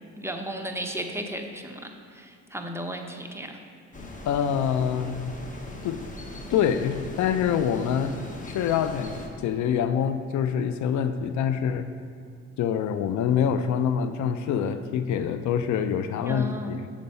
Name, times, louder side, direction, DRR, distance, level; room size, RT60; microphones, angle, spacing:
voice 1, 0.2-3.6 16.2-16.8, equal, 10° right, 3 dB, 0.6 m, -34 dB
sound 1, 3.9-9.3, left 2 dB, 25° left, 1.0 m, -40 dB
voice 2, 4.3-5.3 5.8-6.1 6.5-8.2 8.5-11.9 12.6-16.9, left 8 dB, 70° left, 9 dB, 0.5 m, -25 dB
6.9 x 5.2 x 5.3 m, 2.2 s
cardioid pair, 90°, 30 cm